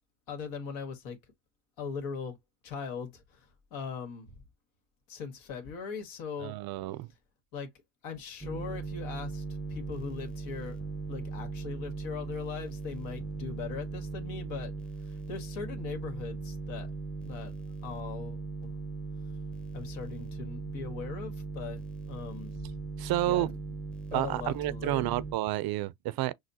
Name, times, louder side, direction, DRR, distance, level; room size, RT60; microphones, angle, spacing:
voice 1, 0.3-1.2 1.8-2.4 2.6-4.4 5.1-6.5 7.5-7.7 8.0-9.4 9.7-10.8 11.1-14.7 15.0-16.9 17.2-18.7 19.7-22.8 23.2-23.5 24.1-25.1, left 6 dB, 75° left, 1.7 m, -40 dB
voice 2, 6.4-7.1 23.0-23.6 24.1-26.3, right 15 dB, 55° right, 0.5 m, -30 dB
soldering station noise, 8.4-25.3, right 3 dB, ahead, 0.6 m, -39 dB
6.3 x 2.2 x 2.7 m
cardioid pair, 105°, 46 cm